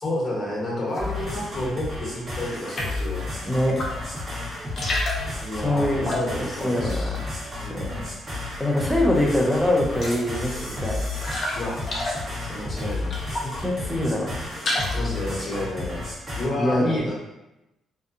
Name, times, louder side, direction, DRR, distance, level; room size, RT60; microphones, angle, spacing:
voice 1, 0.0-3.3 5.4-7.2 7.6-8.0 11.6-11.8 12.4-13.1 14.9-16.1 16.4-17.1, left 1 dB, 30° left, -5 dB, 1.1 m, -30 dB
sound 1, 0.9-1.5 1.9-3.1 3.6-4.2 4.5-7.9 8.2-8.9 9.2-9.3 9.6-13.6 14.0-15.2, left 1 dB, 50° left, 0.6 m, -32 dB
sound 2, 1.0-16.4, left 2 dB, 30° right, 1.2 m, -32 dB
voice 2, 3.4-4.2 5.6-6.1 6.6-7.0 7.7-7.8 8.6-11.1 13.4-14.3 16.6-17.0, left 1 dB, 5° left, -2 dB, 0.6 m, -24 dB
2.6 x 2.2 x 2.5 m, 0.94 s
cardioid pair, 90°, 0 cm